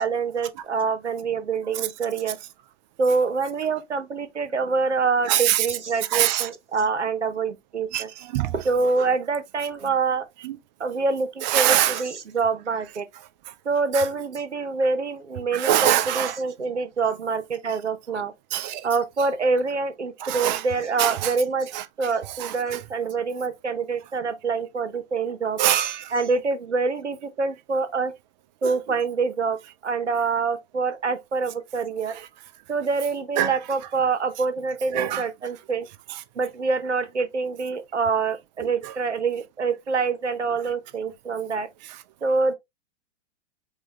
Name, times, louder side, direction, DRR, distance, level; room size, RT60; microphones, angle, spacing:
voice 1, 0.0-2.4 3.0-8.1 8.6-10.2 10.8-13.1 13.6-18.3 18.8-21.7 22.0-25.6 26.1-28.1 28.6-29.6 29.8-32.1 32.7-35.9 36.3-41.7 42.2-42.5, right 4 dB, 85° right, 1.0 m, -26 dB
voice 2, 5.3-5.7 6.1-6.5 7.9-8.6 10.4-10.6 11.4-12.0 13.5-13.6 13.9-14.1 15.5-16.4 18.5-18.9 20.2-20.6 21.0-21.3 21.7-21.8 22.3-22.8 25.6-26.1 28.6-28.8 32.1-32.3 33.4-33.6 34.9-35.2 36.1-36.2 38.6-38.9, right 12 dB, 40° right, 0.6 m, -24 dB
4.7 x 2.4 x 3.0 m
figure-of-eight pair, 105°, 34 cm